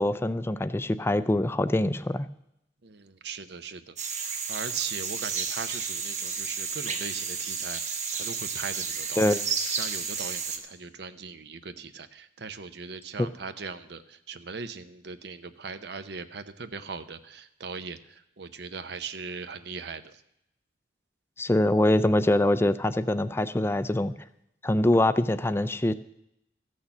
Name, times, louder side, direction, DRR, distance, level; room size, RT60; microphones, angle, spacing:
voice 1, 0.0-2.3 9.2-9.4 21.4-24.1 24.6-25.9, left 1 dB, 15° left, 14 dB, 0.4 m, -24 dB
voice 2, 2.8-9.3 9.7-20.2, right 5 dB, 65° right, 12 dB, 0.8 m, -39 dB
sound 1, 4.0-10.6, right 5 dB, 40° right, 1.2 m, -32 dB
14.0 x 6.5 x 7.1 m, 0.80 s
head